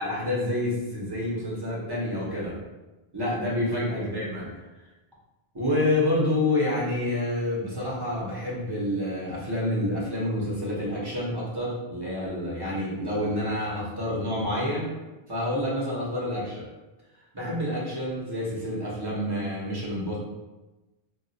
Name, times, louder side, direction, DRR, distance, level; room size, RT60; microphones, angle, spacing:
voice 1, 0.0-2.6 3.1-4.6 5.5-14.9 15.3-16.6 17.3-20.2, left 1 dB, 25° right, -6 dB, 0.8 m, -28 dB
2.3 x 2.3 x 4.0 m, 1.1 s
omnidirectional pair, 1.1 m